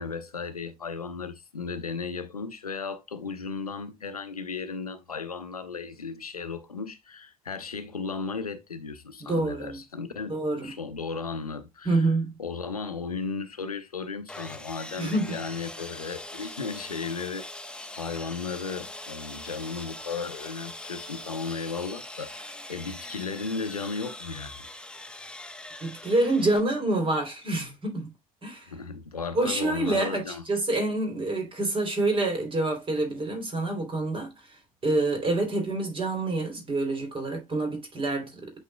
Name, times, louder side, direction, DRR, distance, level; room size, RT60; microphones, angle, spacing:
voice 1, 0.0-12.1 12.4-17.5 18.0-24.6 28.7-30.4, left 5 dB, 85° left, 0.7 m, -35 dB
voice 2, 9.2-9.8 10.3-10.7 11.8-12.3 15.0-15.4 25.8-28.1 28.4-28.7 29.3-34.3 34.8-38.5, right 2 dB, 30° right, 3.2 m, -27 dB
Sawing, 14.3-26.6, left 1 dB, 5° left, 1.1 m, -42 dB
8.5 x 5.5 x 2.3 m
figure-of-eight pair, 60°, 18 cm